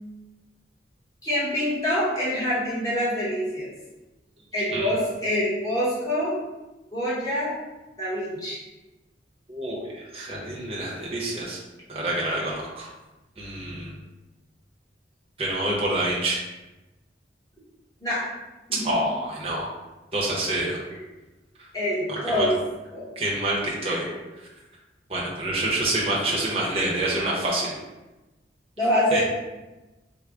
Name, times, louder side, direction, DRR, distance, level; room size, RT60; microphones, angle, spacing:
voice 1, 1.2-3.7 4.5-6.3 6.9-7.5 8.0-8.6 18.0-18.2 18.7-18.9 20.9-21.0 21.7-22.6 22.9-23.1 23.8-24.1 26.3-26.4 28.8-29.2, equal, 20° left, -9 dB, 1.0 m, -25 dB
voice 2, 4.6-4.9 9.5-11.6 11.9-12.9 13.4-13.9 15.4-16.4 18.8-19.7 20.1-20.8 22.1-22.5 23.2-24.0 25.1-27.7 29.1-29.2, right 1 dB, 30° right, -4 dB, 0.7 m, -27 dB
3.4 x 2.1 x 3.6 m, 1.1 s
head